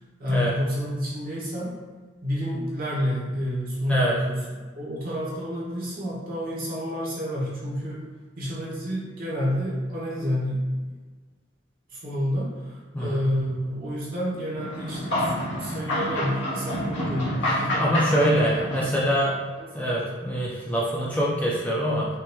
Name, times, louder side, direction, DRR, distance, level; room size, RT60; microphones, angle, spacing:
voice 1, 0.2-1.7 2.2-4.4 4.8-8.0 8.4-10.8 11.9-18.1 18.5-18.7 19.0-19.1 19.6-20.0, equal, 50° right, -7 dB, 1.5 m, -29 dB
sound 1, 14.5-19.2, left 1 dB, 65° left, 1.3 m, -28 dB
voice 2, 17.4-19.3 19.7-22.1, equal, 10° left, -6 dB, 0.5 m, -24 dB
5.9 x 3.0 x 2.3 m, 1.4 s
head